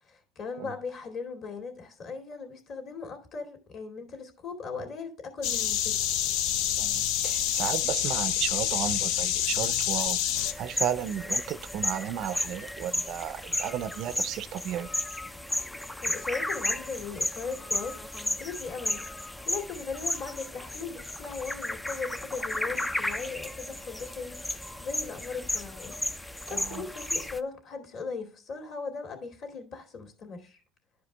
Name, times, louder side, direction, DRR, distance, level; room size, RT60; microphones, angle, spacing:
voice 1, 0.1-6.1 16.0-19.1 19.5-26.0 26.5-30.6, left 4 dB, 45° left, 2.4 m, -38 dB
sound 1, 5.4-10.5, left 11 dB, 75° left, 0.6 m, -27 dB
voice 2, 6.8-10.2 10.6-14.9 26.5-26.8, right 10 dB, 50° right, 0.5 m, -33 dB
sound 2, 10.4-27.4, left 1 dB, 10° left, 0.4 m, -34 dB
11.5 x 5.0 x 3.3 m
cardioid pair, 145°, 0 cm